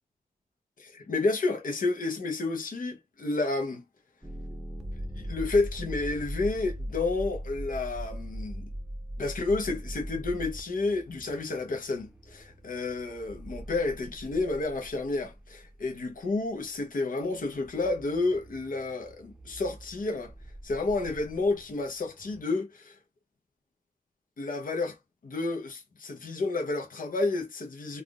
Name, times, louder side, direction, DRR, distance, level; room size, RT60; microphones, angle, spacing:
voice 1, 0.8-3.8 5.2-8.7 9.2-20.3 20.6-23.0 24.4-25.0 25.2-28.0, left 3 dB, 60° left, 1.0 m, -30 dB
sound 1, 4.2-16.0 17.2-22.4, equal, 5° right, 0.8 m, -41 dB
3.5 x 2.4 x 2.4 m
cardioid pair, 45°, 16 cm